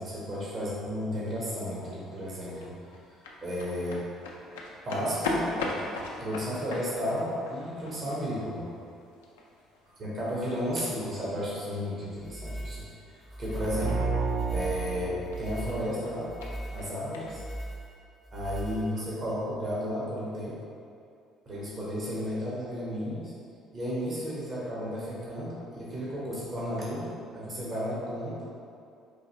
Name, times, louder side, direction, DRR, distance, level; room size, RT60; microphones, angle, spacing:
voice 1, 0.0-3.0 3.4-4.1 4.8-5.5 5.8-8.7 10.0-14.1 14.5-16.3 16.7-17.4 18.3-20.6 21.4-23.3 23.7-28.5, equal, 45° right, -7 dB, 1.3 m, -33 dB
sound 1, 1.7-17.4, left 2 dB, 85° left, 0.4 m, -41 dB
sound 2, 12.2-19.3, right 1 dB, 25° right, 0.9 m, -40 dB
sound 3, 13.6-16.4, right 4 dB, 70° right, 0.4 m, -31 dB
4.7 x 2.5 x 3.1 m, 2.4 s
hypercardioid pair, 55°, 0 cm